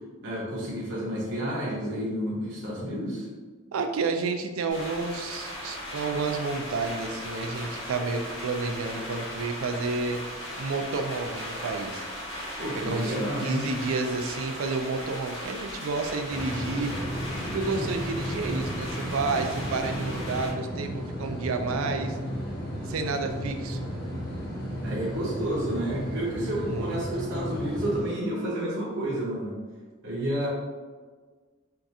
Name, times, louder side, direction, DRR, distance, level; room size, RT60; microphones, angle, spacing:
voice 1, 0.2-3.3 12.6-13.7 17.7-17.9 24.8-29.6 30.0-30.5, right 1 dB, 55° right, -6 dB, 0.7 m, -30 dB
voice 2, 3.7-10.2 10.6-12.0 12.7-16.9 17.5-22.2 22.9-23.9 26.7-27.0, right 4 dB, 90° right, 6 dB, 0.4 m, -30 dB
sound 1, 4.7-20.5, left 1 dB, 60° left, 1.3 m, -37 dB
sound 2, 16.3-28.0, equal, 40° left, 1.1 m, -34 dB
4.5 x 2.4 x 2.6 m, 1.5 s
head